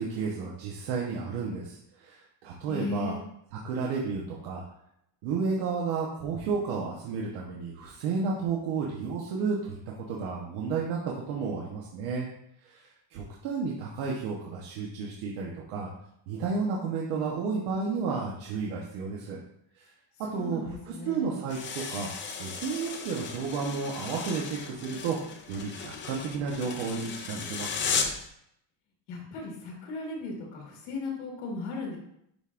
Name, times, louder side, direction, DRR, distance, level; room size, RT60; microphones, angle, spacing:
voice 1, 0.0-3.1 3.6-4.6 5.2-12.3 12.6-15.9 16.3-19.4 19.8-19.9 20.2-22.1 22.4-25.2 25.5-28.0, right 5 dB, 85° right, -3 dB, 1.2 m, -32 dB
voice 2, 2.7-3.2 20.3-21.4 29.1-32.0, left 3 dB, 85° left, -2 dB, 1.9 m, -36 dB
sound 1, 21.5-28.3, left 5 dB, 25° left, 0.4 m, -35 dB
10.5 x 3.6 x 2.5 m, 0.75 s
cardioid pair, 170°, 46 cm